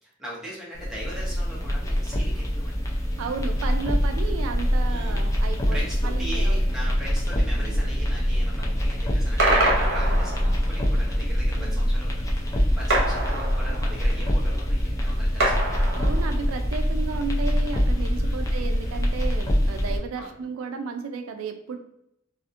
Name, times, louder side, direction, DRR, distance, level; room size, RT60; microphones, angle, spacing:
voice 1, 0.0-2.8 4.8-5.4 5.7-15.8 18.2-18.7 20.1-20.3, equal, 5° right, -6 dB, 0.8 m, -40 dB
sound 1, 0.7-20.0, equal, 15° left, 0.4 m, -24 dB
voice 2, 3.2-6.7 7.5-7.9 11.4-11.8 15.9-21.8, right 4 dB, 85° right, 6 dB, 0.3 m, -34 dB
sound 2, 9.4-10.8 12.9-14.1 15.4-16.5, right 1 dB, 60° right, 0.9 m, -25 dB
2.8 x 2.4 x 2.4 m, 0.79 s
head